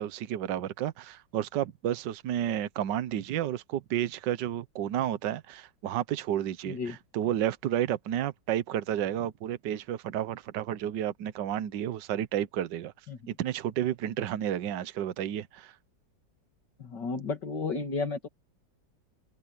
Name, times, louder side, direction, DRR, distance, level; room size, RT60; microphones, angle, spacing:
voice 1, 0.0-12.9 13.3-15.7, right 11 dB, 75° right, 1.5 m, -31 dB
voice 2, 6.7-7.0 13.1-13.3 16.8-18.3, left 4 dB, 70° left, 2.8 m, -33 dB
open air
omnidirectional pair, 2.0 m